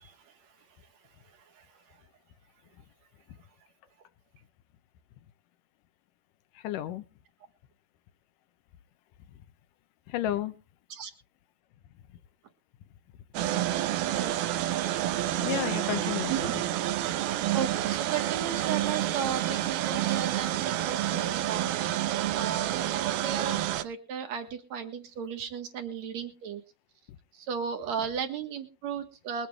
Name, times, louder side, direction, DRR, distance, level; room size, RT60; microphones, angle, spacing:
voice 1, 6.6-7.0 10.1-10.5 15.4-16.6, left 12 dB, 70° left, 12 dB, 2.3 m, -32 dB
sound 1, 13.4-23.8, right 13 dB, 85° right, 2.8 m, -29 dB
voice 2, 17.5-21.7 22.3-23.6 23.8-26.6 27.5-29.5, right 7 dB, 55° right, 6 dB, 2.6 m, -34 dB
22.0 x 9.3 x 3.4 m, 0.33 s
omnidirectional pair, 4.2 m